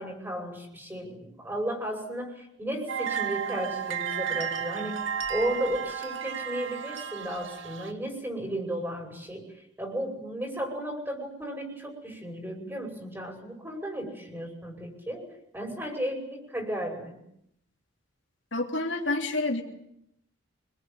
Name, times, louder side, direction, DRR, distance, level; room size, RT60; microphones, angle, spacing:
voice 1, 0.0-5.0 5.3-9.4 9.8-15.3 15.5-17.2, right 1 dB, 10° right, 3 dB, 5.7 m, -34 dB
sound 1, 2.9-7.9, right 8 dB, 75° right, 2.1 m, -33 dB
voice 2, 18.5-19.6, left 2 dB, 70° left, 2 dB, 3.4 m, -28 dB
26.0 x 21.0 x 9.1 m, 0.78 s
head